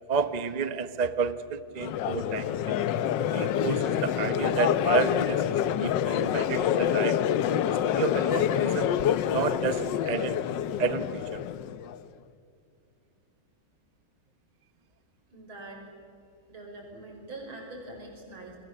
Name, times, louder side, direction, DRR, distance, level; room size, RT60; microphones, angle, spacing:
voice 1, 0.1-2.5 3.3-7.2 7.9-8.9 9.3-10.4 10.8-11.4, right 5 dB, 40° right, 12 dB, 0.6 m, -30 dB
Crowd, 1.8-12.0, left 10 dB, 70° left, 1.3 m, -27 dB
voice 2, 15.3-15.8 16.5-18.6, right 2 dB, 80° right, 1 dB, 6.3 m, -43 dB
29.0 x 22.0 x 7.5 m, 2.5 s
omnidirectional pair, 2.2 m